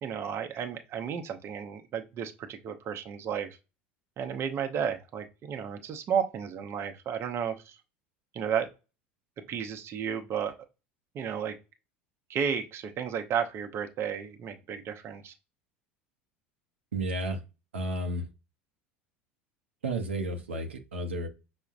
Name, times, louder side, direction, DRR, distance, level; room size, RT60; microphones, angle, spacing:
voice 1, 0.0-3.5 4.2-7.8 8.3-8.7 9.5-10.5 11.1-11.5 12.3-15.3, right 7 dB, 45° right, 0.7 m, -33 dB
voice 2, 16.9-17.4 17.7-18.3 19.8-21.3, right 1 dB, 85° right, 0.6 m, -32 dB
5.7 x 2.1 x 2.4 m
hypercardioid pair, 80°, 6 cm